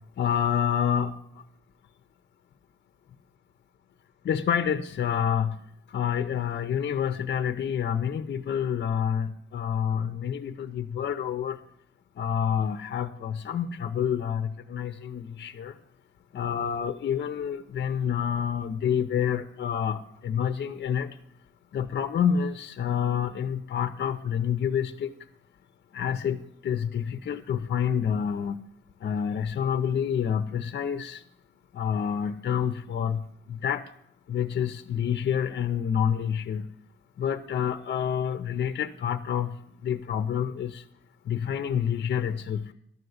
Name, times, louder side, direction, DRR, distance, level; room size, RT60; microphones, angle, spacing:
voice 1, 0.2-1.2 4.2-5.6 5.9-11.6 12.2-15.8 16.3-21.1 21.7-25.1 25.9-28.6 29.0-31.2 31.7-33.2 33.5-33.8 34.3-36.7 37.2-40.8 41.3-42.7, left 8 dB, 55° left, 10 dB, 0.7 m, -28 dB
12.0 x 6.8 x 7.9 m, 0.73 s
wide cardioid pair, 145°, 21 cm